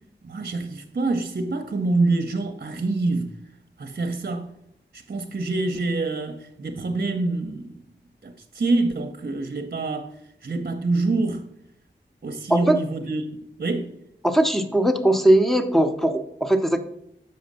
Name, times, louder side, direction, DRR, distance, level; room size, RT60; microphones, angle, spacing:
voice 1, 0.2-3.3 3.8-4.5 4.9-7.8 8.2-10.1 10.4-11.4 12.2-13.2 13.6-13.9, right 3 dB, 55° right, 0.7 m, -26 dB
voice 2, 14.2-16.8, right 1 dB, ahead, 0.8 m, -19 dB
6.7 x 5.0 x 5.3 m
cardioid pair, 40°, 19 cm